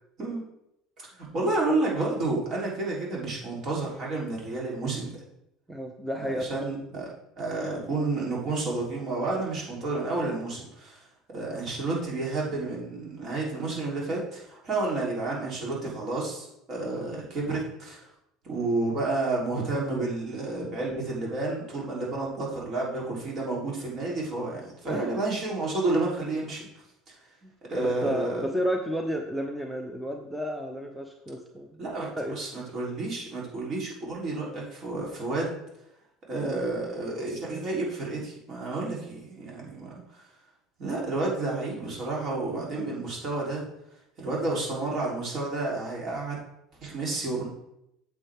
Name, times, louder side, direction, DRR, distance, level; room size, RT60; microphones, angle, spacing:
voice 1, 1.0-5.2 6.2-7.1 7.4-11.1 11.3-18.1 18.4-26.7 27.1-27.2 27.7-28.4 31.8-35.6 36.3-40.3 40.8-43.6 44.2-46.4 46.8-47.5, right 2 dB, 45° right, -3 dB, 3.6 m, -30 dB
voice 2, 5.7-6.6 24.8-25.1 27.4-31.8 32.2-32.4 42.7-42.9, equal, 5° right, 3 dB, 0.8 m, -32 dB
8.7 x 7.2 x 3.7 m, 0.81 s
supercardioid pair, 95°, 0 cm